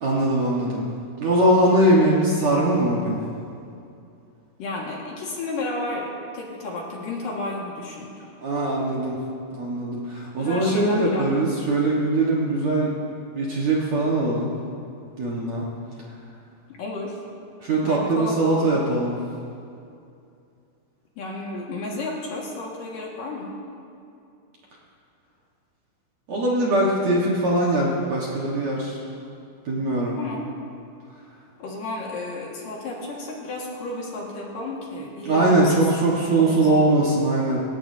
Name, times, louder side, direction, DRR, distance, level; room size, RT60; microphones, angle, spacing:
voice 1, 0.0-0.8 1.2-3.2 8.4-9.2 9.5-12.9 13.3-14.5 15.2-15.7 17.6-19.2 26.3-29.0 29.7-30.2 35.3-37.6, right 1 dB, 60° right, -5 dB, 1.9 m, -21 dB
voice 2, 4.6-8.1 10.4-11.5 16.8-17.2 17.8-18.7 21.2-23.5 30.2-30.5 31.6-36.0 36.4-36.7, left 2 dB, 55° left, -3 dB, 3.1 m, -32 dB
27.0 x 14.0 x 2.8 m, 2.5 s
omnidirectional pair, 5.2 m